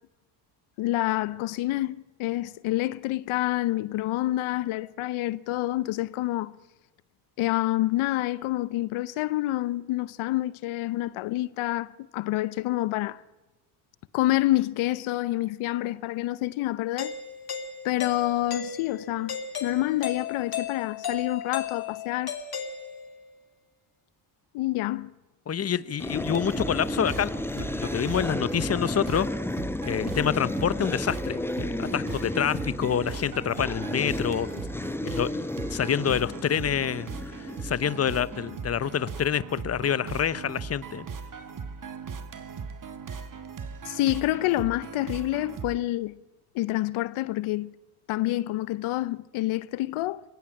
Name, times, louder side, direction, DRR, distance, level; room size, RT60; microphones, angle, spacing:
voice 1, 0.8-6.5 7.4-13.2 14.1-17.2 17.8-22.4 24.5-25.1 43.8-46.2 46.5-47.7 48.1-50.2, left 16 dB, 75° left, 0.8 m, -28 dB
Doorbell, 17.0-23.3, left 7 dB, 50° left, 2.9 m, -35 dB
voice 2, 25.5-29.3 29.8-34.5 35.0-37.1 37.6-41.1, left 8 dB, 30° left, 0.9 m, -27 dB
sound 1, 26.0-38.9, left 1 dB, 5° left, 1.0 m, -33 dB
sound 2, 26.2-45.8, right 5 dB, 40° right, 2.0 m, -39 dB
22.0 x 16.5 x 8.7 m
cardioid pair, 85°, 49 cm